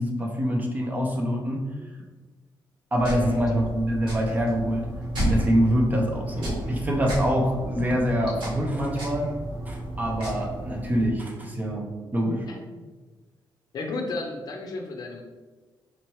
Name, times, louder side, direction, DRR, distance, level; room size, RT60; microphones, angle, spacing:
voice 1, 0.0-1.6 2.9-4.9 5.2-9.3 9.7-12.5, equal, 20° right, 0 dB, 0.5 m, -25 dB
sound 1, 3.0-11.0, right 1 dB, 75° right, 1.2 m, -32 dB
voice 2, 13.7-15.2, left 3 dB, 50° left, 2 dB, 0.5 m, -33 dB
4.3 x 2.8 x 3.1 m, 1.3 s
wide cardioid pair, 175°, 8 cm